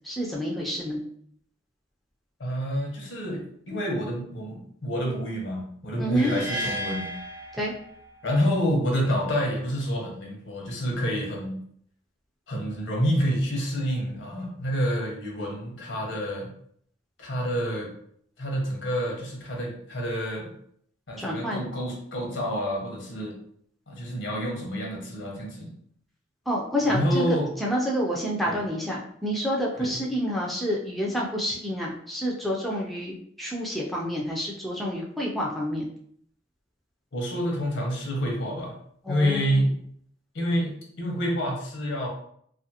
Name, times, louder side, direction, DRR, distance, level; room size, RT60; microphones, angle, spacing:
voice 1, 0.0-1.0 6.0-6.3 7.6-7.7 21.2-21.6 26.5-35.9 39.0-39.6, equal, ahead, -3 dB, 0.3 m, -28 dB
voice 2, 2.4-7.1 8.2-11.6 12.5-16.5 17.2-17.9 18.4-20.5 21.1-23.4 23.9-25.7 26.8-27.5 28.4-28.6 29.8-29.9 37.1-38.7 39.1-39.8 40.3-42.1, equal, 80° left, 0 dB, 0.8 m, -28 dB
sound 1, 6.1-8.3, equal, 75° right, 0.5 m, -34 dB
2.4 x 2.4 x 2.7 m, 0.65 s
head